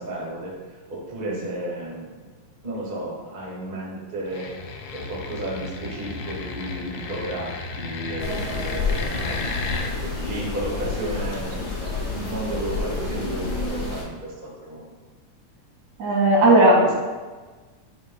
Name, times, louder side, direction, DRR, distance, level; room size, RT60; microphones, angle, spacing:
voice 1, 0.0-2.3 2.6-4.5 4.9-9.5 10.0-11.7 12.2-14.9, right 1 dB, 25° right, -5 dB, 1.3 m, -33 dB
sound 1, 4.3-9.9, left 4 dB, 75° left, 1.7 m, -33 dB
sound 2, 8.2-14.0, left 3 dB, 55° left, 0.8 m, -29 dB
voice 2, 16.0-16.9, right 1 dB, 75° right, -5 dB, 3.2 m, -16 dB
10.0 x 5.1 x 2.2 m, 1.3 s
omnidirectional pair, 3.3 m